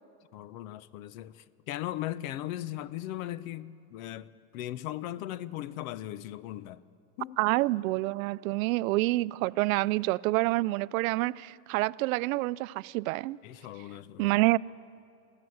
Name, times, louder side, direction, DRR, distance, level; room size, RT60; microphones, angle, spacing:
voice 1, 0.3-6.8 7.2-7.4 13.4-14.4, left 13 dB, 75° left, 0.8 m, -38 dB
voice 2, 7.4-13.4 14.2-14.6, right 20 dB, 80° right, 0.5 m, -27 dB
23.5 x 15.0 x 7.8 m
supercardioid pair, 145°, 41 cm